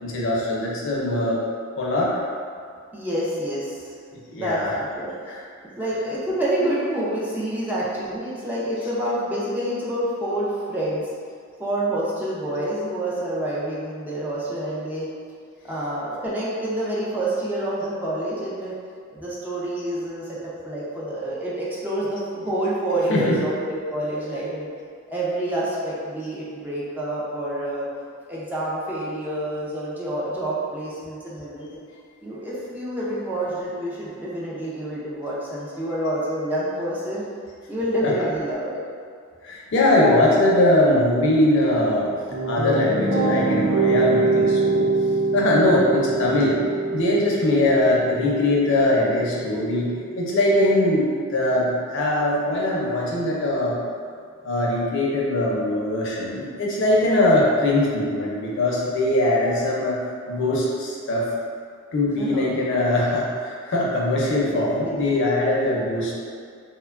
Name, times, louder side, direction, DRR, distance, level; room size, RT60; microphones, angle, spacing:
voice 1, 0.0-1.4 1.8-2.1 4.2-4.7 5.3-5.4 23.1-23.4 38.0-38.1 39.4-42.1 42.5-44.9 45.3-46.6 46.9-53.8 54.4-60.0 60.3-61.3 61.9-66.1, left 1 dB, 60° left, -4 dB, 0.5 m, -21 dB
voice 2, 2.9-3.9 4.4-5.1 5.6-11.1 11.6-15.1 15.6-18.7 19.1-24.7 25.1-27.8 28.3-31.8 32.2-37.2 37.7-38.8 45.7-45.8 47.8-47.9 62.2-62.6 64.4-64.6 64.8-65.0, right 1 dB, 10° right, -8 dB, 0.3 m, -28 dB
sound 1, 41.9-51.1, right 3 dB, 55° right, 0.6 m, -24 dB
2.9 x 2.2 x 2.3 m, 2.1 s
head